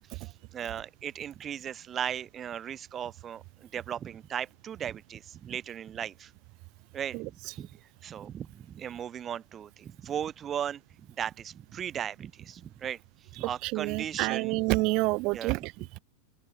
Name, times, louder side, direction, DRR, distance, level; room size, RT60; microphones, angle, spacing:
voice 1, 0.1-6.3 6.9-7.7 8.0-14.6 15.3-15.9, right 9 dB, 25° right, 1.6 m, -37 dB
voice 2, 13.6-15.7, right 25 dB, 40° right, 1.2 m, -28 dB
open air
figure-of-eight pair, 90°, 0 cm